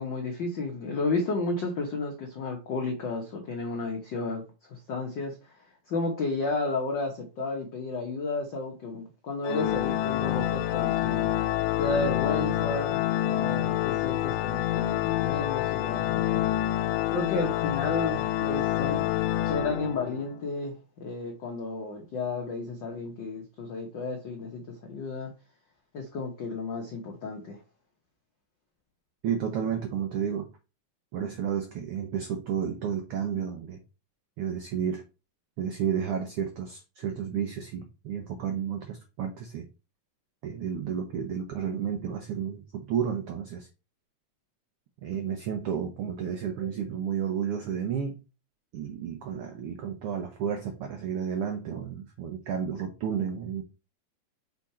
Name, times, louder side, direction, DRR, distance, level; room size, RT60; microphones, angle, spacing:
voice 1, 0.0-4.4 4.7-11.3 11.8-16.5 16.8-25.3 25.9-27.6, left 3 dB, 70° left, 1 dB, 1.0 m, -32 dB
Organ, 9.4-20.3, left 13 dB, 90° left, 2.1 m, -27 dB
voice 2, 29.2-30.5 31.1-33.8 34.4-35.0 35.6-39.6 40.4-43.7 45.0-48.2 48.7-53.6, right 8 dB, 75° right, 5 dB, 1.3 m, -31 dB
6.2 x 3.7 x 4.2 m, 0.31 s
omnidirectional pair, 3.5 m